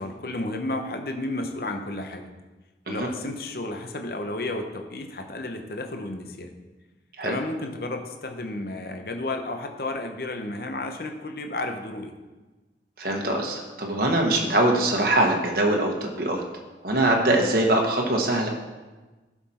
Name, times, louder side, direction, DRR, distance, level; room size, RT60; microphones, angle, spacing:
voice 1, 0.0-2.3 2.9-6.5 7.2-12.1, left 2 dB, 55° left, 5 dB, 0.8 m, -32 dB
voice 2, 13.0-16.4 16.8-18.5, right 1 dB, 55° right, 0 dB, 1.1 m, -23 dB
11.5 x 5.9 x 4.2 m, 1.2 s
head